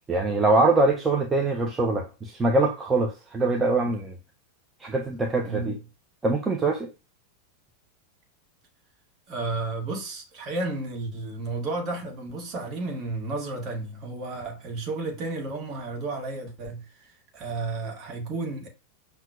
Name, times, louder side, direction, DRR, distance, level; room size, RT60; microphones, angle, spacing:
voice 1, 0.1-4.1 4.8-5.8 6.2-6.9, right 2 dB, 15° right, 0.4 m, -23 dB
voice 2, 5.4-5.8 9.3-18.7, right 3 dB, 35° right, 1.0 m, -32 dB
5.6 x 2.1 x 2.3 m
figure-of-eight pair, 90°, 0 cm